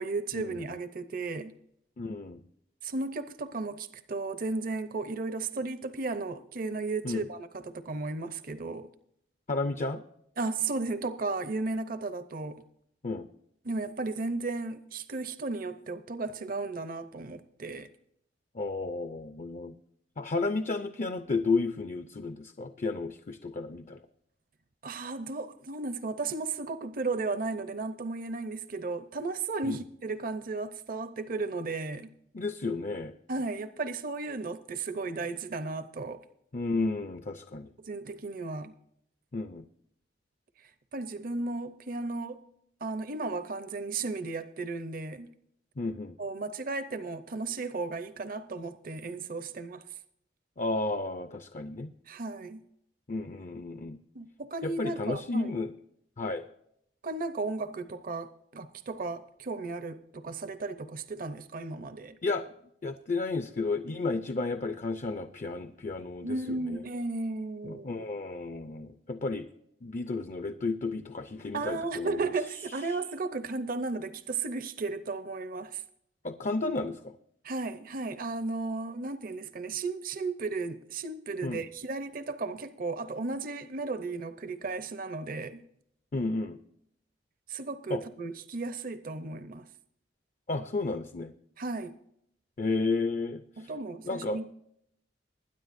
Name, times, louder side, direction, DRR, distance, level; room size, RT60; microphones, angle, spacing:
voice 1, 0.0-1.6 2.8-8.9 10.4-12.6 13.6-17.9 24.8-32.1 33.3-36.2 37.9-38.7 40.9-42.4 42.8-45.3 46.2-49.8 52.1-52.6 54.1-55.5 57.0-62.2 66.2-68.0 71.5-75.8 77.4-85.6 87.5-89.7 91.6-92.0 93.6-94.4, right 3 dB, 50° right, 0.7 m, -34 dB
voice 2, 2.0-2.4 7.0-7.2 9.5-10.0 13.0-13.3 18.5-19.7 20.2-24.0 29.6-29.8 32.3-33.1 36.5-37.7 39.3-39.6 45.8-46.1 50.6-51.9 53.1-54.0 54.6-55.7 56.2-56.5 62.2-62.5 62.8-66.8 67.6-69.5 69.8-72.2 72.9-73.0 76.2-77.1 81.4-81.6 86.1-86.6 87.9-88.0 90.5-91.3 92.6-93.7 94.0-94.5, left 3 dB, 40° left, 0.5 m, -32 dB
20.5 x 9.9 x 2.6 m
head